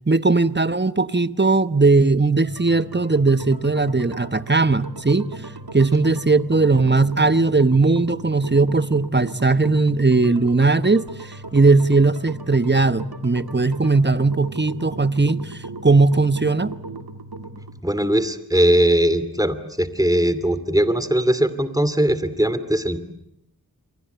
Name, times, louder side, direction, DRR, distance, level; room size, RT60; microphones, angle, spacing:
voice 1, 0.1-5.3 5.7-16.8, right 3 dB, 30° right, 1.1 m, -18 dB
sound 1, 2.4-17.8, right 2 dB, 85° right, 2.2 m, -37 dB
voice 2, 17.8-23.0, right 1 dB, 10° right, 2.7 m, -20 dB
29.0 x 23.5 x 8.1 m
wide cardioid pair, 40°, 36 cm